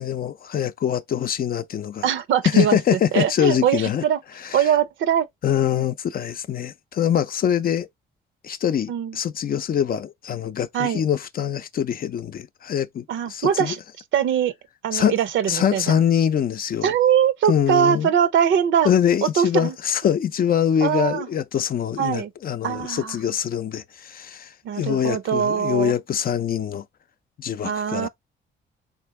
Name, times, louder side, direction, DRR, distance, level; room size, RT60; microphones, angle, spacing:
voice 1, 0.0-2.0 2.5-4.0 4.5-4.6 5.4-7.9 8.4-13.7 14.9-15.2 15.5-16.9 17.5-18.1 18.8-26.8 27.4-28.1, left 9 dB, 45° left, 0.5 m, -23 dB
voice 2, 2.0-4.2 4.5-5.3 8.9-9.2 10.7-11.0 13.1-13.8 14.1-14.5 14.8-16.0 16.8-18.9 19.2-19.7 20.8-21.3 22.0-22.3 22.6-23.1 24.6-25.9 27.6-28.1, right 9 dB, 75° right, 0.6 m, -22 dB
4.3 x 3.5 x 3.1 m
cardioid pair, 90°, 20 cm